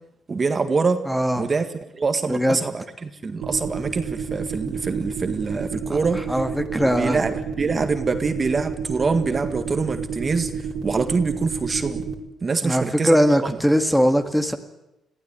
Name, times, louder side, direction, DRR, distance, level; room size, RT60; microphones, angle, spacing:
voice 1, 0.3-1.0 1.4-6.2 6.7-12.1 12.4-13.2, right 4 dB, 35° right, 8 dB, 1.8 m, -25 dB
voice 2, 1.1-1.5 2.3-2.6 5.9-6.0 6.3-7.2 12.6-14.6, equal, ahead, 7 dB, 1.8 m, -20 dB
sound 1, 3.4-12.1, right 6 dB, 85° right, 3.1 m, -29 dB
22.0 x 15.0 x 9.1 m, 0.91 s
cardioid pair, 90°, 0 cm